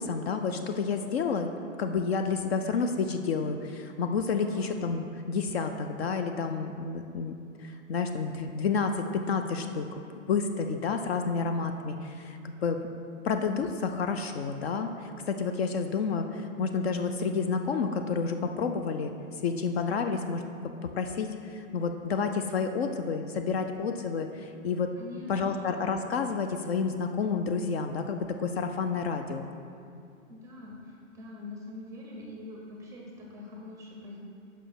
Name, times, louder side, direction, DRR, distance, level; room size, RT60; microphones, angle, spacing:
voice 1, 0.0-1.5 1.8-7.3 7.6-10.0 10.3-12.8 13.2-19.1 19.4-24.9 25.3-29.5, left 5 dB, 50° left, 6 dB, 0.4 m, -30 dB
voice 2, 25.0-25.6 30.3-34.2, left 2 dB, 10° right, -2 dB, 0.6 m, -44 dB
5.5 x 5.0 x 5.8 m, 2.5 s
hypercardioid pair, 150°, 40 cm